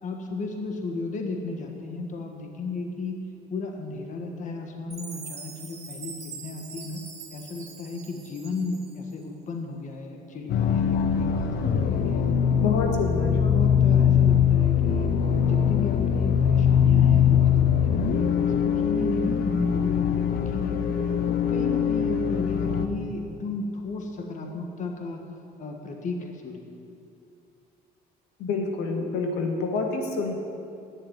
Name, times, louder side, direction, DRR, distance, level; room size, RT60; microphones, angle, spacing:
voice 1, 0.0-7.0 7.3-12.6 13.3-15.1 15.5-20.8 21.3-25.2 25.6-26.6, left 3 dB, 45° left, 3 dB, 1.5 m, -34 dB
Chime, 4.9-9.1, right 5 dB, 40° right, 2.2 m, -43 dB
sound 1, 10.5-22.9, left 8 dB, 65° left, 0.9 m, -22 dB
voice 2, 12.5-13.4 28.4-30.3, left 3 dB, 85° left, 2 dB, 1.7 m, -27 dB
10.0 x 7.5 x 9.3 m, 2.6 s
cardioid pair, 110°, 17 cm